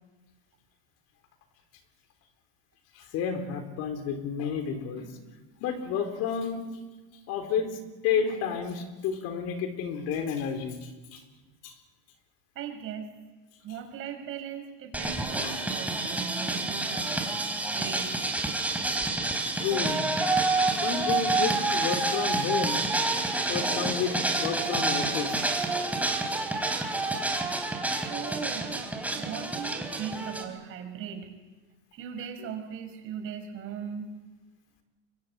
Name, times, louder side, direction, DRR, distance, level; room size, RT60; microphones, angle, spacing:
voice 1, 2.9-5.1 5.6-6.6 7.3-11.2 11.6-11.7 15.4-15.5 19.6-20.1 20.8-22.8 23.5-25.4 28.0-28.1, left 7 dB, 50° left, 7 dB, 4.1 m, -31 dB
voice 2, 12.5-13.1 13.6-17.1 17.7-18.2 27.9-28.8 29.1-31.3 31.9-34.2, right 8 dB, 40° right, 5 dB, 5.8 m, -39 dB
sound 1, 14.9-30.4, right 2 dB, 5° right, 3.8 m, -28 dB
24.0 x 24.0 x 9.0 m, 1.2 s
supercardioid pair, 130°, 32 cm